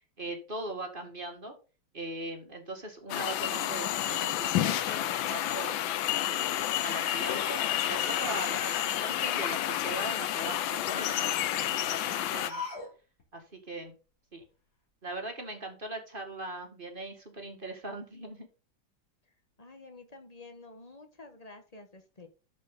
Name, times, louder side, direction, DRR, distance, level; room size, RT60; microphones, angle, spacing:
voice 1, 0.2-1.6 1.9-5.8 6.3-12.6 13.3-13.9 14.3-14.4 15.0-18.5, right 2 dB, 25° right, 3 dB, 2.0 m, -40 dB
sound 1, 3.1-12.5, left 12 dB, 90° left, 1.5 m, -30 dB
sound 2, 3.1-3.7 4.1-4.5 6.6-9.7 10.5-12.9 13.2-13.3 14.4-14.5, left 2 dB, 55° left, 3.7 m, -42 dB
voice 2, 19.6-22.3, left 3 dB, 20° left, 6 dB, 1.4 m, -50 dB
12.5 x 5.2 x 3.9 m, 0.33 s
omnidirectional pair, 2.1 m